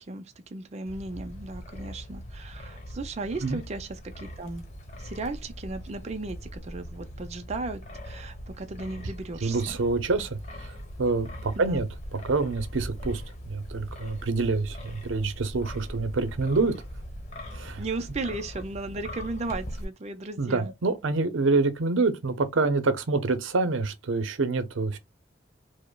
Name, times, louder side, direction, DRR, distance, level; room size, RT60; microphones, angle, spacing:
voice 1, 0.1-4.6 5.0-9.8 11.6-11.9 17.8-20.7, right 3 dB, 35° right, 0.4 m, -36 dB
Wind, 0.9-19.8, equal, 40° left, 1.0 m, -41 dB
voice 2, 9.4-10.7 11.0-11.9 12.2-13.2 13.5-16.7 17.5-17.8 20.4-25.0, right 3 dB, 85° right, 0.6 m, -26 dB
5.0 x 2.1 x 2.2 m
head